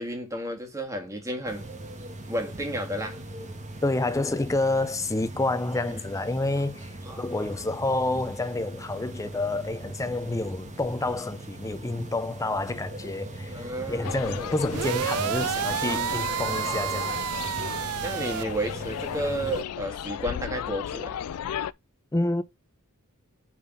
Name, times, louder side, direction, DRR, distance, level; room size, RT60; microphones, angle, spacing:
voice 1, 0.0-1.7 2.3-3.2 5.8-6.0 7.0-7.3 13.5-14.6 16.5-17.2 18.0-21.1, equal, 15° right, 1.9 m, -32 dB
sound 1, 1.5-19.6, right 1 dB, 35° right, 1.4 m, -40 dB
voice 2, 3.8-17.1 22.1-22.4, left 2 dB, 15° left, 0.5 m, -28 dB
sound 2, 14.0-21.7, left 9 dB, 80° left, 0.4 m, -35 dB
sound 3, 14.7-18.4, right 11 dB, 70° right, 0.3 m, -30 dB
7.5 x 4.0 x 3.8 m
head